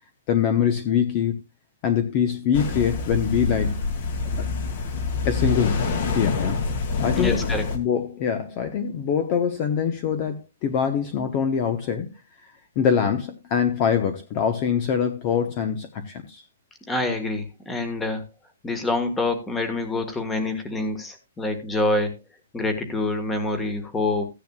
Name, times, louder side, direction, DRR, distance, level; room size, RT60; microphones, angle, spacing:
voice 1, 0.3-1.4 1.8-3.8 5.2-5.9 6.1-6.6 7.0-7.4 7.7-12.1 12.4-16.4, left 7 dB, 25° left, 1.0 m, -24 dB
sound 1, 2.5-7.8, left 4 dB, 45° left, 2.5 m, -26 dB
voice 2, 7.1-7.6 16.9-18.3 18.6-22.1 22.5-24.3, left 2 dB, 5° left, 1.6 m, -26 dB
15.5 x 10.0 x 2.4 m
hypercardioid pair, 170°, 0 cm